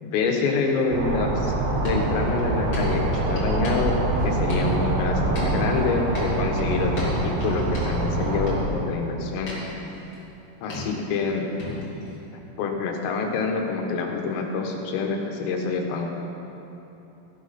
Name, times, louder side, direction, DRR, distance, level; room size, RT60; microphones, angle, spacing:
voice 1, 0.0-4.0 4.2-9.5 10.6-11.5 12.6-16.1, left 4 dB, 90° left, 2 dB, 3.9 m, -26 dB
sound 1, 0.9-8.7, right 2 dB, 75° right, 3.5 m, -25 dB
sound 2, 1.8-5.0 5.3-8.5 9.5-10.1 10.7-11.3 11.6-12.1, left 1 dB, 30° left, 2.3 m, -36 dB
15.0 x 12.0 x 4.2 m, 3.0 s
omnidirectional pair, 5.8 m